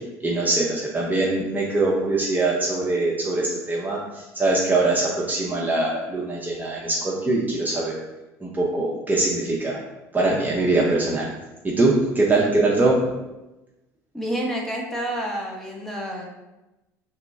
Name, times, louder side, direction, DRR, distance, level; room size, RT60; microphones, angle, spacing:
voice 1, 0.2-4.0 4.3-7.9 8.4-9.8 10.1-11.3 11.6-13.0, right 2 dB, 20° right, -4 dB, 0.7 m, -22 dB
voice 2, 14.1-16.3, right 1 dB, 5° left, -2 dB, 0.9 m, -29 dB
3.0 x 2.2 x 4.0 m, 1.0 s
hypercardioid pair, 75°, 9 cm